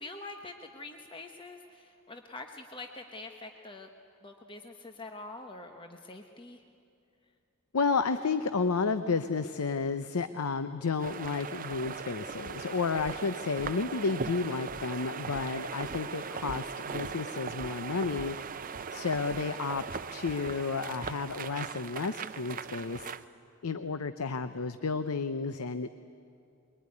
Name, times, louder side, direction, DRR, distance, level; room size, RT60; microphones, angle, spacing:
voice 1, 0.0-3.9 4.2-6.6, left 2 dB, 25° left, 4 dB, 1.0 m, -45 dB
voice 2, 7.7-18.4 18.9-23.1 23.6-25.9, left 4 dB, 85° left, 11 dB, 0.7 m, -32 dB
sound 1, 11.0-23.2, right 5 dB, 40° right, 0.6 m, -39 dB
23.0 x 22.5 x 9.7 m, 2.5 s
head